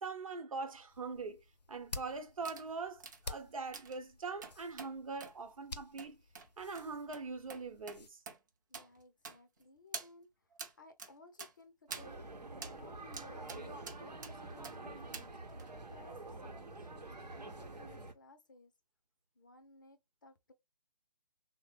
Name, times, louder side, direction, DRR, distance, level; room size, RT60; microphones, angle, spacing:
voice 1, 0.0-1.4 1.7-6.2 6.6-8.2, right 4 dB, 55° right, 0.8 m, -42 dB
sound 1, 0.9-8.1, left 3 dB, 85° left, 0.5 m, -51 dB
sound 2, 2.5-2.7 3.0-3.2 3.7-4.0 4.4-4.9 5.2-5.4 6.0-6.1 6.4-6.5 6.8-6.9 7.1-7.2 7.5-7.6 7.9-8.0 8.3-8.4 8.7-8.9 9.3-9.6 9.9-10.1 10.6-10.7 11.0-11.1 11.4-11.5 11.9-12.1 12.6-12.8 13.1-13.6 13.9-14.3 14.6-14.8 15.1-15.3 15.6-15.7, right 5 dB, 30° right, 0.5 m, -46 dB
voice 2, 8.7-10.3 10.8-12.2 12.8-15.3 15.9-16.2 16.4-17.1 17.6-18.7 19.4-20.5, left 2 dB, 30° left, 0.4 m, -58 dB
sound 3, 11.9-18.1, right 2 dB, 85° right, 0.8 m, -47 dB
3.1 x 2.0 x 3.2 m
figure-of-eight pair, 145°, 21 cm